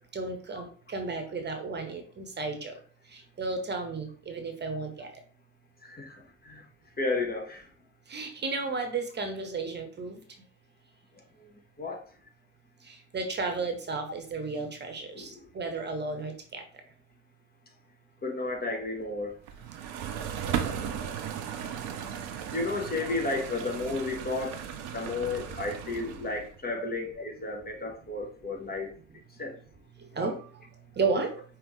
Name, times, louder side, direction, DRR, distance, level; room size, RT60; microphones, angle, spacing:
voice 1, 0.1-2.8 3.1-5.1 8.1-10.2 12.8-16.6 26.8-26.9 30.0-30.6 30.9-31.4, right 3 dB, 30° right, 1.0 m, -33 dB
voice 2, 5.8-6.6 7.0-7.6 11.4-11.5 11.8-12.0 15.1-15.4 18.2-19.4 22.5-24.6 24.9-28.9 29.4-29.6, left 3 dB, 25° left, 1.1 m, -33 dB
sound 1, 19.5-26.5, right 8 dB, 65° right, 0.7 m, -36 dB
5.4 x 3.0 x 3.1 m
figure-of-eight pair, 45°, 34 cm